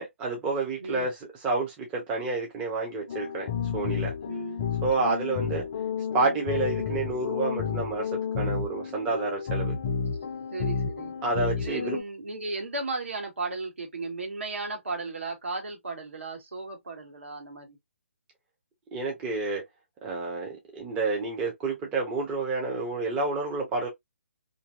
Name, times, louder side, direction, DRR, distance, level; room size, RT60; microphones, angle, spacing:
voice 1, 0.0-3.5 3.7-4.1 4.8-5.6 6.1-8.1 8.4-9.7 11.2-12.0 18.9-19.6 20.0-23.9, right 3 dB, 15° right, 0.6 m, -29 dB
sound 1, 3.1-12.0, left 6 dB, 35° left, 0.5 m, -31 dB
voice 2, 4.2-4.7 5.3-5.7 10.5-11.1 11.6-17.8, right 3 dB, 65° right, 1.3 m, -35 dB
2.7 x 2.6 x 2.4 m
figure-of-eight pair, 135°, 7 cm